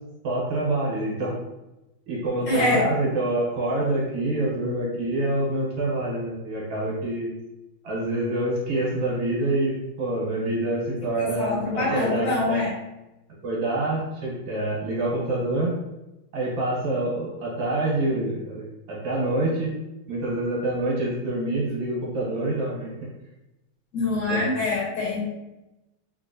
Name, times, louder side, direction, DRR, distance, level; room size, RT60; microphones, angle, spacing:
voice 1, 0.2-1.3 2.1-7.3 7.8-12.6 13.4-15.7 16.3-19.7 20.1-22.9 24.3-24.4, right 2 dB, 70° right, -4 dB, 1.8 m, -26 dB
voice 2, 2.5-2.9 11.2-12.7 23.9-25.2, left 2 dB, 60° left, -4 dB, 1.7 m, -25 dB
3.8 x 2.8 x 2.7 m, 0.95 s
omnidirectional pair, 2.3 m